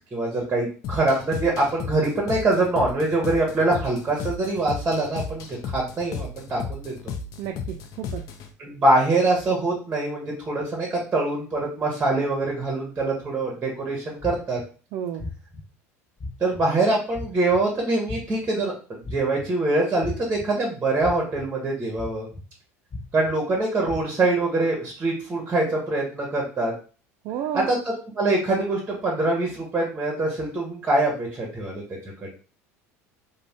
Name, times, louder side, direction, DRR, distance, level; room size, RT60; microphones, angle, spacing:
voice 1, 0.1-6.9 8.6-14.6 16.4-22.3 23.1-26.7 27.5-31.8, right 2 dB, 25° right, -1 dB, 0.8 m, -24 dB
sound 1, 0.8-8.5, left 5 dB, 50° left, 0.4 m, -35 dB
voice 2, 7.4-8.2 14.9-15.2 27.2-27.7, right 9 dB, 55° right, 3 dB, 0.3 m, -31 dB
sound 2, 14.2-14.6 15.2-15.6 16.2-16.6 17.1-17.6 18.1-18.5 19.0-19.5 20.0-20.4 21.0-21.4 22.0-22.4 22.9-23.3 23.9-24.0, left 2 dB, 25° left, 0.9 m, -34 dB
2.5 x 2.1 x 3.2 m, 0.37 s
hypercardioid pair, 80°, 8 cm